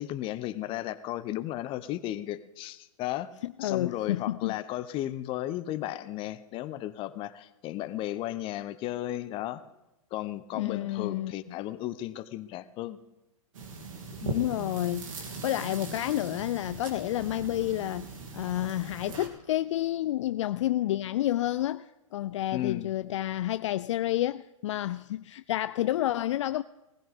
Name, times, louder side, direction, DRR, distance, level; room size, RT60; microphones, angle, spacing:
voice 1, 0.0-3.3 3.6-9.6 10.1-13.0 14.2-14.4 22.5-22.9, left 14 dB, 30° left, 0.8 m, -34 dB
voice 2, 3.4-4.6 10.5-11.3 14.3-26.6, left 14 dB, 60° left, 0.4 m, -30 dB
sound 1, 13.5-19.3, right 3 dB, 70° right, 2.7 m, -40 dB
19.0 x 15.0 x 3.6 m
hypercardioid pair, 115°, 18 cm